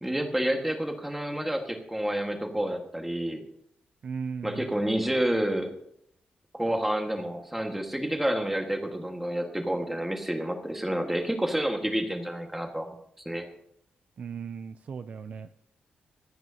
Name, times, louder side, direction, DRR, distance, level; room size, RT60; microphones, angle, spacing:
voice 1, 0.0-3.4 4.4-5.7 6.5-13.0 13.2-13.4, right 1 dB, 5° right, 3 dB, 1.6 m, -29 dB
voice 2, 4.0-4.7 14.2-15.5, right 6 dB, 45° right, 10 dB, 0.4 m, -36 dB
25.0 x 9.2 x 2.8 m, 0.73 s
wide cardioid pair, 175°, 3 cm